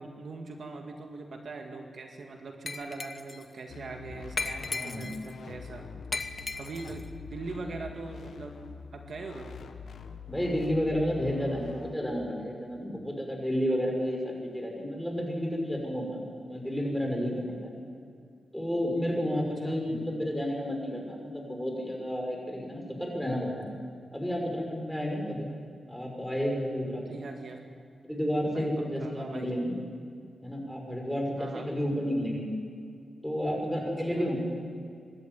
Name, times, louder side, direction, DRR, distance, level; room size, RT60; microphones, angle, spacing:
voice 1, 0.0-5.9 6.3-8.5 8.9-9.6 19.4-19.8 27.1-27.6 28.5-28.7 29.0-29.5 31.4-31.7 33.9-34.3, right 3 dB, 65° right, 3 dB, 2.1 m, -42 dB
Glass, 2.7-3.4 4.4-5.3 6.1-7.0, left 3 dB, 40° left, 1.1 m, -36 dB
sound 1, 3.7-11.9, left 6 dB, 80° left, 1.3 m, -45 dB
voice 2, 10.3-17.7 18.5-23.7 24.1-25.5 25.9-27.2 28.0-29.7 30.4-32.5 33.2-34.4, equal, 5° left, 0 dB, 6.2 m, -31 dB
25.0 x 13.0 x 9.7 m, 2.4 s
cardioid pair, 75°, 0 cm